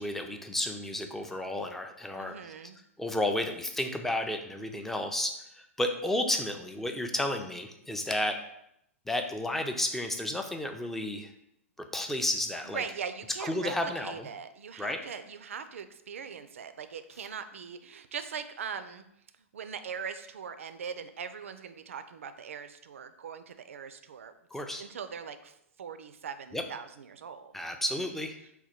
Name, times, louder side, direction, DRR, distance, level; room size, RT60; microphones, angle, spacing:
voice 1, 0.0-2.3 3.0-8.4 9.1-11.3 11.9-12.8 13.5-14.3 14.8-15.0 24.5-24.8 26.5-26.6 27.5-28.4, left 1 dB, 5° left, 5 dB, 0.3 m, -32 dB
voice 2, 2.1-2.8 12.6-19.1 19.5-24.3 24.7-27.6, right 7 dB, 65° right, 10 dB, 0.4 m, -41 dB
4.0 x 2.2 x 4.2 m, 0.78 s
figure-of-eight pair, 105°, 8 cm